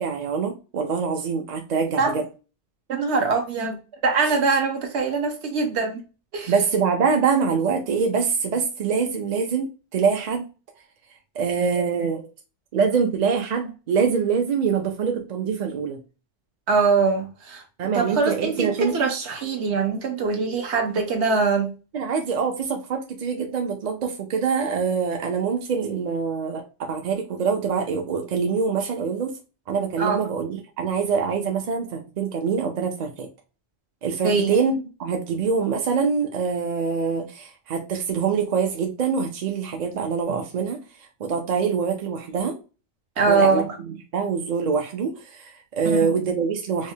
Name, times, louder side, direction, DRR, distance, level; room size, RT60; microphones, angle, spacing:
voice 1, 0.0-2.2 6.5-10.5 11.4-12.2 12.7-16.0 17.8-18.9 21.9-26.6 26.9-29.4 29.7-33.3 34.0-40.8 41.2-42.6 43.3-43.6 44.1-46.9, right 5 dB, 55° right, 0.5 m, -24 dB
voice 2, 2.9-3.8 4.0-6.0 6.3-6.5 16.7-21.7 30.0-30.2 34.2-34.6 43.2-43.7 45.8-46.1, right 4 dB, 70° right, 1.1 m, -23 dB
4.8 x 2.1 x 2.7 m
omnidirectional pair, 1.2 m